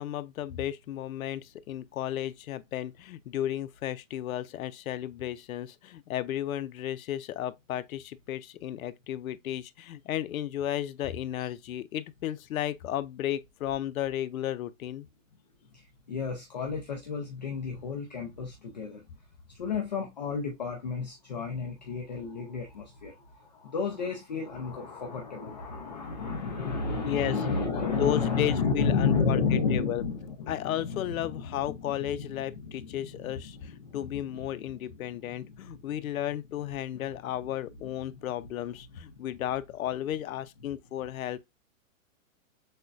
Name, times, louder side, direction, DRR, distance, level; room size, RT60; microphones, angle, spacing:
voice 1, 0.0-15.1 27.0-27.6 27.8-30.0 30.5-41.4, left 11 dB, 85° left, 0.6 m, -34 dB
voice 2, 15.7-19.0 19.5-35.9 37.2-37.3, left 5 dB, 35° left, 0.5 m, -32 dB
6.4 x 2.2 x 2.4 m
hypercardioid pair, 175°, 41 cm